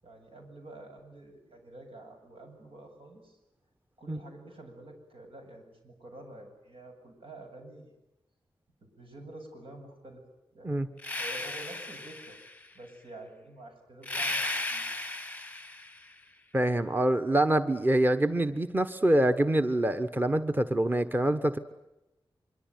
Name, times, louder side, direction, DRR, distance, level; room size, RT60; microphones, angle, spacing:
voice 1, 0.0-3.4 4.0-7.9 8.8-10.2 10.5-10.7 11.2-12.4 12.7-14.4 14.7-14.8, right 2 dB, 90° right, 3 dB, 7.9 m, -48 dB
sound 1, 11.0-12.7 14.0-16.1, left 2 dB, 15° left, 0.9 m, -35 dB
voice 2, 16.5-21.6, right 1 dB, 20° right, 9 dB, 1.3 m, -25 dB
25.0 x 24.0 x 9.5 m, 0.90 s
wide cardioid pair, 115°, 9 cm